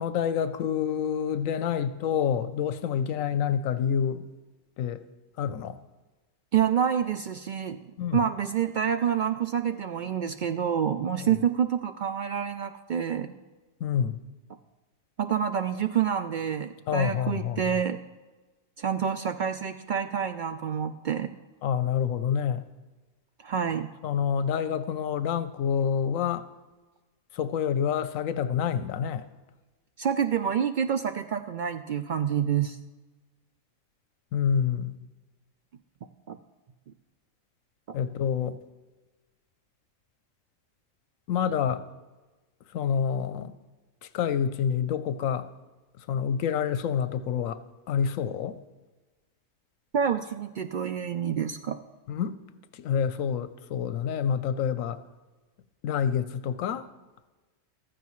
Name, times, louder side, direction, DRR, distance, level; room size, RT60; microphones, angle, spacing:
voice 1, 0.0-4.3 4.8-5.0 5.4-5.8 8.0-8.2 11.2-11.3 13.8-14.2 16.9-17.7 21.6-22.6 24.0-26.5 27.3-29.3 34.3-35.0 37.9-38.6 41.3-41.9 42.7-43.5 44.0-45.5 46.1-47.6 47.9-48.6 52.1-52.3 52.7-55.0 55.8-56.9, left 8 dB, 80° left, 12 dB, 1.0 m, -27 dB
voice 2, 6.5-7.8 8.1-13.3 15.2-18.0 18.8-21.4 23.4-23.9 30.0-32.8 36.3-36.4 49.9-51.8, right 8 dB, 85° right, 7 dB, 0.4 m, -27 dB
15.0 x 14.0 x 3.1 m, 1.2 s
omnidirectional pair, 1.4 m